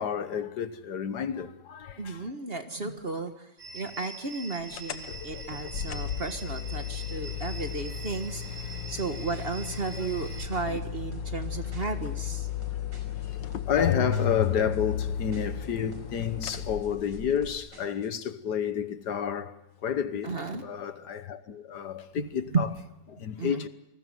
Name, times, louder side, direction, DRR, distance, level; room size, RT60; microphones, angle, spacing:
voice 1, 0.0-2.3 5.4-5.6 10.0-10.1 10.7-10.8 13.3-19.5 19.8-20.3 20.6-22.7 23.1-23.7, left 8 dB, 70° left, 1.6 m, -30 dB
voice 2, 2.0-12.5 20.2-20.6 22.2-22.3 22.5-22.7 23.2-23.6, right 4 dB, 35° right, 1.6 m, -34 dB
sound 1, 3.6-10.5, right 2 dB, 5° right, 4.6 m, -44 dB
sound 2, 4.7-17.6, left 9 dB, 85° left, 1.8 m, -34 dB
sound 3, 8.7-18.2, right 1 dB, 85° right, 5.9 m, -50 dB
28.0 x 19.5 x 7.8 m
omnidirectional pair, 1.9 m